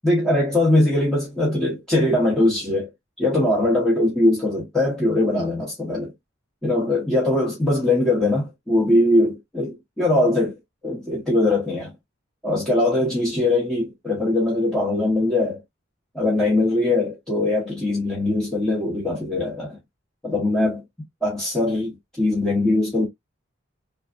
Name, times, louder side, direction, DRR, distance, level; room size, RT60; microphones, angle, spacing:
voice 1, 0.0-2.9 3.2-6.1 6.6-10.6 10.8-11.9 12.4-15.6 16.1-19.8 20.2-20.8 21.2-23.1, left 1 dB, 5° left, 0.8 m, -21 dB
3.3 x 2.0 x 2.4 m
head